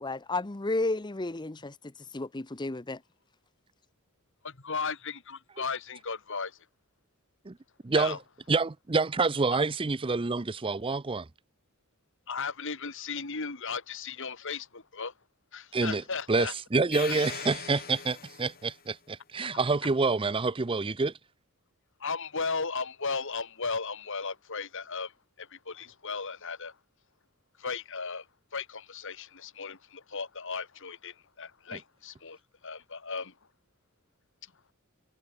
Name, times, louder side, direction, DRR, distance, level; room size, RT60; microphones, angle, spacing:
voice 1, 0.0-1.8 2.1-3.0, left 2 dB, 20° left, 0.7 m, -32 dB
voice 2, 4.4-6.6 7.9-8.2 12.3-15.1 15.5-16.5 17.0-17.1 19.4-19.6 22.0-25.1 25.4-26.8 27.6-28.3 28.5-33.3, left 5 dB, 60° left, 2.3 m, -36 dB
voice 3, 7.8-8.2 8.5-11.3 15.7-16.0 16.3-21.1 31.7-31.8, right 3 dB, 25° right, 0.5 m, -27 dB
sound 1, 16.9-18.8, left 7 dB, 40° left, 3.5 m, -40 dB
head